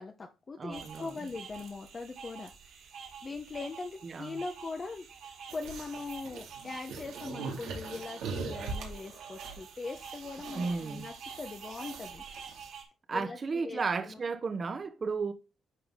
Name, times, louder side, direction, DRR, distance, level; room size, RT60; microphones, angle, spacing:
voice 1, 0.0-2.9 3.2-12.2 13.1-14.2, left 4 dB, 35° left, 1.0 m, -41 dB
voice 2, 0.6-1.3 4.0-4.4 10.5-11.1 13.1-15.3, right 4 dB, 40° right, 1.2 m, -34 dB
sound 1, 0.7-12.8, right 6 dB, 70° right, 3.2 m, -48 dB
sound 2, 5.5-12.7, right 4 dB, 90° right, 2.4 m, -42 dB
10.0 x 4.7 x 3.7 m
cardioid pair, 90°, 0 cm